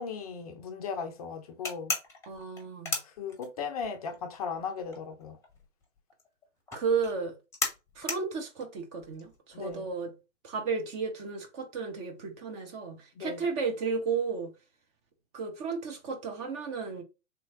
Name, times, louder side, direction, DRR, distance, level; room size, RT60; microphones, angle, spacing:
voice 1, 0.0-1.9 3.2-5.4 9.5-9.8 13.2-13.4, left 5 dB, 30° left, 0.4 m, -37 dB
sound 1, 1.6-3.9 4.1-9.9, left 4 dB, 5° left, 0.8 m, -35 dB
voice 2, 2.3-3.0 6.7-7.3 8.0-10.1 10.4-14.5 15.3-17.0, right 5 dB, 25° right, 0.5 m, -33 dB
3.3 x 2.9 x 2.8 m
figure-of-eight pair, 115°, 39 cm